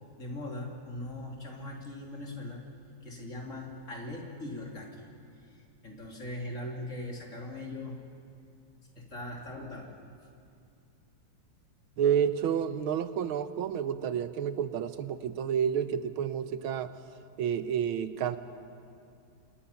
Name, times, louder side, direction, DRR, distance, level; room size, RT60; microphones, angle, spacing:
voice 1, 0.2-2.6 3.0-5.1 5.5-8.0 8.9-9.9, left 1 dB, 35° left, 0 dB, 3.3 m, -40 dB
voice 2, 12.0-16.9 17.4-18.4, right 8 dB, 85° right, 11 dB, 1.7 m, -30 dB
29.5 x 26.5 x 5.8 m, 2.5 s
omnidirectional pair, 2.3 m